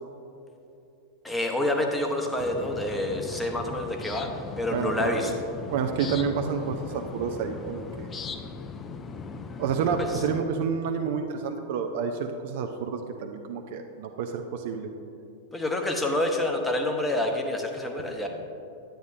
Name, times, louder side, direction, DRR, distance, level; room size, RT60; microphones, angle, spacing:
voice 1, 1.2-4.3 4.6-5.3 10.0-10.1 15.5-18.3, left 1 dB, 5° left, 2 dB, 0.9 m, -27 dB
sound 1, 2.4-10.4, left 4 dB, 25° left, 0.4 m, -39 dB
voice 2, 4.7-5.4 5.7-8.1 9.6-14.9, right 6 dB, 50° right, 5 dB, 0.4 m, -29 dB
10.0 x 9.2 x 2.6 m, 2.8 s
figure-of-eight pair, 90°, 0 cm